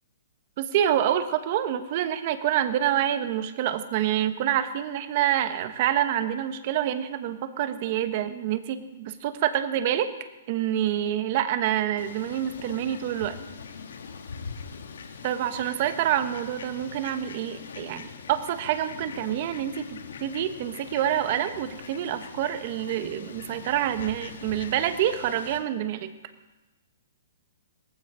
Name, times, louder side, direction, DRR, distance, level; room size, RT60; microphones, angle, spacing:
voice 1, 0.6-10.1 10.5-13.4 15.2-26.1, right 11 dB, 45° right, 10 dB, 1.2 m, -27 dB
Fowl, 12.0-25.6, left 6 dB, 80° left, 1.9 m, -42 dB
18.5 x 15.5 x 5.0 m, 1.1 s
hypercardioid pair, 155°, 0 cm